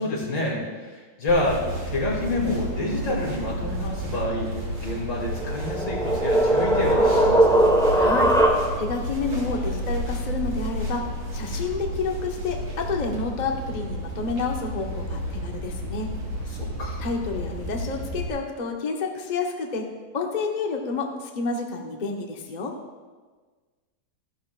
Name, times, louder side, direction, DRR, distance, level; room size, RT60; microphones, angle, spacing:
voice 1, 0.0-7.8 16.5-17.1, left 1 dB, 80° left, -3 dB, 3.1 m, -28 dB
sound 1, 1.3-18.3, equal, 65° right, 3.4 m, -32 dB
sound 2, 5.2-9.0, right 1 dB, 5° left, 0.9 m, -20 dB
voice 2, 7.9-8.4 8.7-16.1 17.0-19.9 20.1-22.8, left 4 dB, 35° left, 1 dB, 0.8 m, -29 dB
14.5 x 11.5 x 2.4 m, 1.4 s
omnidirectional pair, 2.0 m